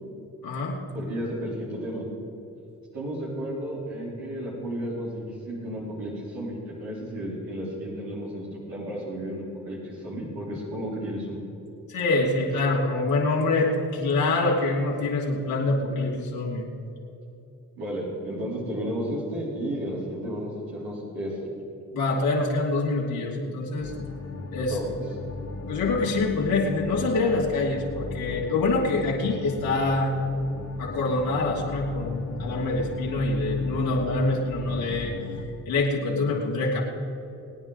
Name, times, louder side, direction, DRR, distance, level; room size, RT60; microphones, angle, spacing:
voice 1, 0.4-0.8 11.9-16.7 21.9-23.9 24.5-24.8 25.7-30.1 30.8-35.1 35.7-36.8, left 2 dB, 85° left, -3 dB, 2.6 m, -25 dB
voice 2, 0.9-2.1 2.9-11.4 17.8-21.4 24.7-24.9, equal, 85° right, -6 dB, 3.7 m, -33 dB
sound 1, 23.8-35.5, left 4 dB, 55° left, 2.0 m, -37 dB
23.0 x 9.2 x 4.0 m, 2.9 s
supercardioid pair, 60°, 34 cm